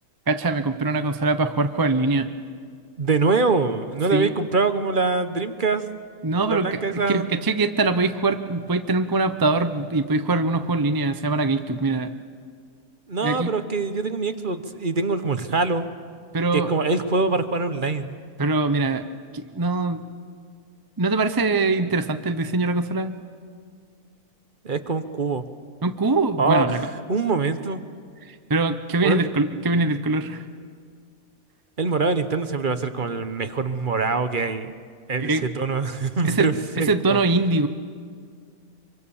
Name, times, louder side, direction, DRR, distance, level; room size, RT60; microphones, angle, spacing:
voice 1, 0.3-2.3 4.1-4.3 6.2-12.1 13.2-13.5 16.3-16.7 18.4-19.0 19.3-20.1 21.0-23.2 25.8-26.8 28.5-30.4 35.2-35.5 36.2-37.7, right 3 dB, 20° right, 8 dB, 0.6 m, -23 dB
voice 2, 3.0-5.9 6.5-7.3 13.1-15.9 16.5-18.2 24.6-25.4 26.4-27.8 29.0-29.2 31.8-34.7 35.1-37.2, right 4 dB, 40° right, 10 dB, 1.0 m, -24 dB
24.5 x 24.0 x 7.1 m, 2.1 s
omnidirectional pair, 1.5 m